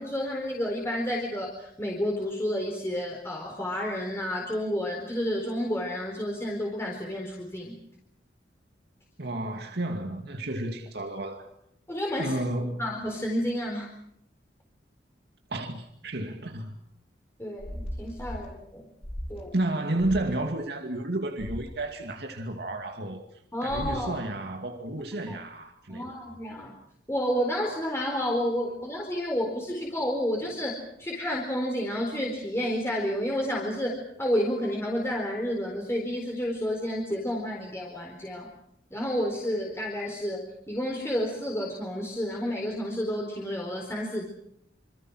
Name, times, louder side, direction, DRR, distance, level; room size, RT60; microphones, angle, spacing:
voice 1, 0.0-7.7 11.9-12.4 12.8-13.9 17.4-18.9 19.3-19.5 23.5-24.1 25.3-25.4 25.9-26.7 27.1-38.5 38.9-44.2, equal, 15° left, 4.3 m, -30 dB
voice 2, 9.2-11.5 12.2-12.8 15.5-16.8 19.5-26.2, right 1 dB, 60° right, 2.4 m, -32 dB
sound 1, 17.6-18.5 19.0-19.4 20.0-20.3 21.4-21.7 23.7-24.1, equal, 35° left, 4.1 m, -37 dB
27.5 x 26.5 x 6.3 m
head